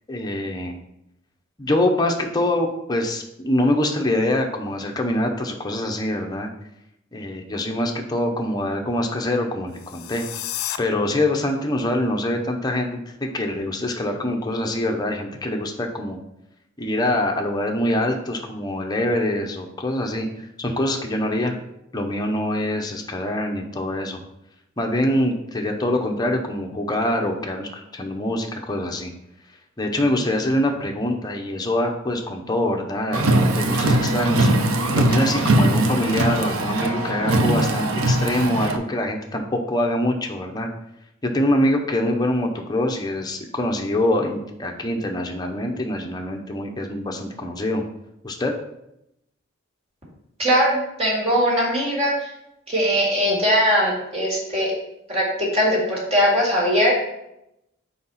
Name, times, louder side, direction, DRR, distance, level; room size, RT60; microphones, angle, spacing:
voice 1, 0.1-0.8 1.6-6.5 7.1-10.2 10.8-16.2 16.8-21.6 21.9-24.2 24.8-29.1 29.8-34.5 34.9-40.7 41.2-47.8 48.2-48.5, left 1 dB, 20° left, 2 dB, 0.7 m, -24 dB
sound 1, 9.7-10.8, left 12 dB, 85° left, 0.4 m, -31 dB
Car, 33.1-38.8, right 1 dB, 85° right, 0.7 m, -20 dB
voice 2, 50.4-52.3 52.7-54.7 55.1-56.9, equal, 30° right, -5 dB, 2.1 m, -20 dB
4.8 x 4.1 x 5.5 m, 0.84 s
head